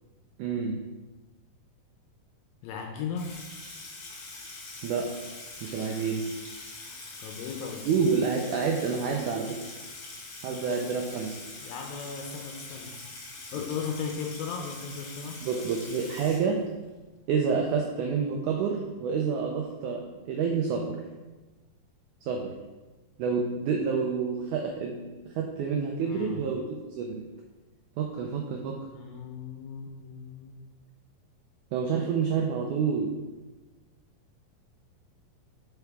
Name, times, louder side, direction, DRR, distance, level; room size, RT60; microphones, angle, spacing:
voice 1, 0.4-0.8 4.8-5.1 5.6-6.2 7.8-9.7 10.4-11.4 15.4-16.6 17.3-21.0 22.2-22.5 23.2-25.1 25.3-26.6 27.0-27.2 28.0-28.8 31.7-33.1, right 5 dB, 80° right, 1 dB, 1.8 m, -28 dB
voice 2, 2.6-3.3 7.2-7.8 11.6-12.9 13.5-15.4 26.0-26.4 28.9-30.5, left 6 dB, 80° left, 2 dB, 2.4 m, -36 dB
Water tap faucet / Sink (filling or washing), 3.2-16.9, left 3 dB, 55° left, 1.5 m, -43 dB
8.0 x 5.9 x 3.5 m, 1.2 s
omnidirectional pair, 4.2 m